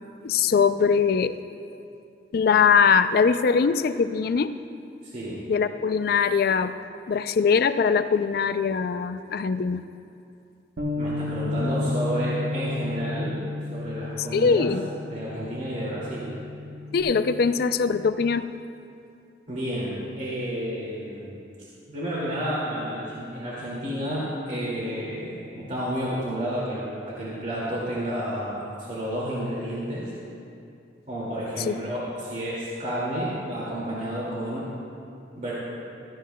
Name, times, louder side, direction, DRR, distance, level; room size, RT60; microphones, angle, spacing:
voice 1, 0.2-1.4 2.3-4.5 5.5-6.8 7.1-9.8 14.3-14.9 16.9-18.5 31.7-31.8, left 5 dB, 55° left, 12 dB, 0.4 m, -22 dB
voice 2, 5.0-5.4 11.0-13.4 13.7-14.7 15.1-16.3 19.5-21.4 21.9-30.1 31.1-34.7 35.4-35.5, equal, 45° right, -7 dB, 2.2 m, -31 dB
Bass guitar, 10.8-17.0, left 2 dB, 85° right, 1.2 m, -32 dB
16.5 x 14.0 x 2.2 m, 2.6 s
head